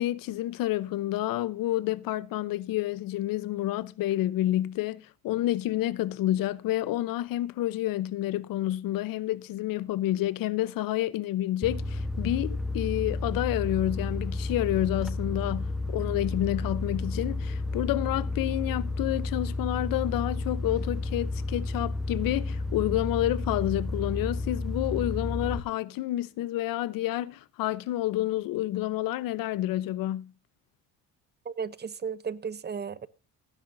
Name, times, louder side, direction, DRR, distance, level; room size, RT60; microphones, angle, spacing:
voice 1, 0.0-30.3, left 14 dB, 70° left, 0.8 m, -29 dB
sound 1, 11.6-25.6, left 2 dB, ahead, 1.1 m, -32 dB
voice 2, 31.4-33.1, right 6 dB, 30° right, 0.8 m, -34 dB
18.0 x 10.0 x 2.7 m
cardioid pair, 105°, 35 cm